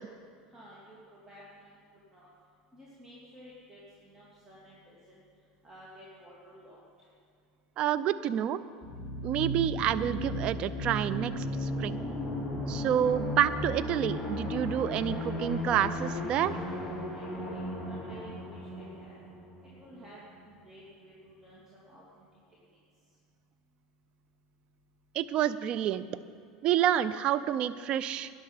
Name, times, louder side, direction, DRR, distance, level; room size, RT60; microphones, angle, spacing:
voice 1, 0.5-1.0 1.3-2.3 2.7-5.0 5.6-6.8 17.1-19.1 19.8-22.3, equal, 25° right, -7 dB, 3.1 m, -52 dB
voice 2, 7.8-8.6 9.2-12.0 12.7-16.5 25.1-26.1 26.6-28.3, right 10 dB, 50° right, 14 dB, 0.5 m, -28 dB
sound 1, 8.8-20.4, left 1 dB, ahead, 2.9 m, -35 dB
11.5 x 10.5 x 5.7 m, 2.3 s
hypercardioid pair, 90°, 2 cm